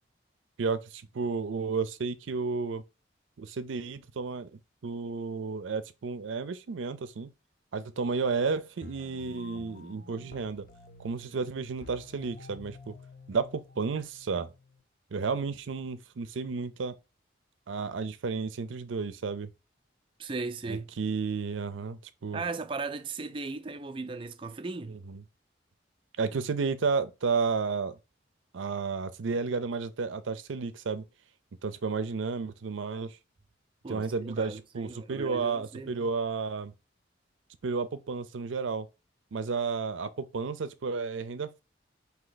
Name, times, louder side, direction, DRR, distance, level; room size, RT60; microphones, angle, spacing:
voice 1, 0.6-2.8 3.4-7.3 7.7-10.6 11.0-12.9 13.3-14.5 15.1-16.9 17.7-19.5 20.7-22.4 24.9-25.2 26.2-28.0 28.5-31.0 31.6-33.2 33.9-36.7 37.6-38.9 39.3-41.6, right 4 dB, 85° right, 0.5 m, -32 dB
sound 1, 8.8-14.8, left 3 dB, 50° left, 0.6 m, -51 dB
voice 2, 20.2-20.9 22.3-25.0 33.8-36.1, right 3 dB, 25° right, 0.3 m, -37 dB
4.3 x 2.8 x 3.9 m
head